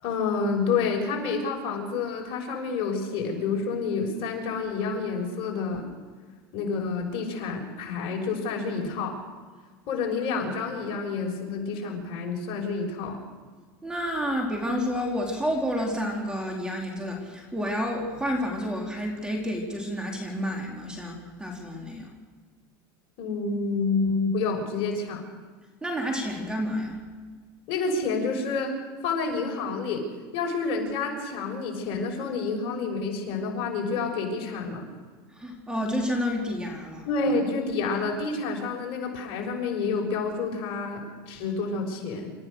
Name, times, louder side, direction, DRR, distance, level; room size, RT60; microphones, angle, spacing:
voice 1, 0.0-5.9 6.5-9.2 9.9-13.2 23.2-25.2 27.7-28.8 29.0-30.1 30.3-34.8 37.0-42.3, left 4 dB, 55° left, 1 dB, 6.5 m, -29 dB
voice 2, 13.8-22.1 25.8-27.0 35.4-37.1, equal, 5° right, 1 dB, 4.2 m, -30 dB
28.5 x 14.5 x 6.6 m, 1.5 s
supercardioid pair, 125°, 12 cm